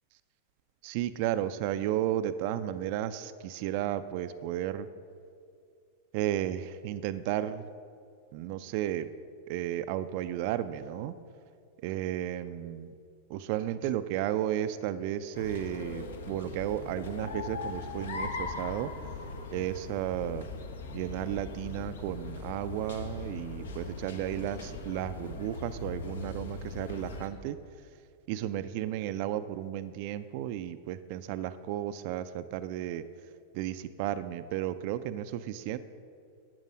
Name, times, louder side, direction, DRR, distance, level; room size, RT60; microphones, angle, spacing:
voice 1, 0.8-4.9 6.1-7.7 8.3-9.1 9.5-11.1 11.8-12.9 13.3-18.9 19.5-20.5 20.9-27.6 28.3-33.0 33.5-35.8, right 12 dB, 45° right, 13 dB, 0.4 m, -33 dB
sound 1, 15.3-27.3, left 3 dB, 65° left, 1.2 m, -40 dB
12.0 x 8.8 x 6.2 m, 2.3 s
figure-of-eight pair, 90°, 0 cm